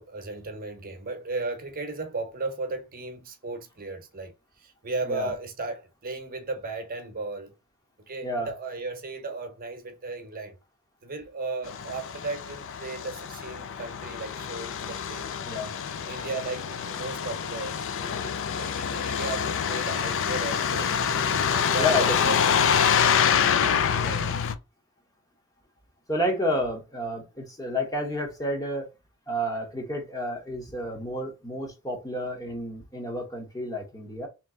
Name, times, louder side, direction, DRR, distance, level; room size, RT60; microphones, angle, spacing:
voice 1, 0.0-4.3 4.6-7.5 8.1-10.6 11.0-15.3 16.1-20.9 21.5-22.4 23.9-24.4, right 3 dB, 40° right, 0.9 m, -35 dB
Truck, 11.7-24.6, left 7 dB, 60° left, 0.4 m, -26 dB
voice 2, 21.8-22.3 26.1-28.9 29.3-34.3, left 1 dB, 15° left, 1.0 m, -30 dB
3.3 x 3.0 x 3.7 m
head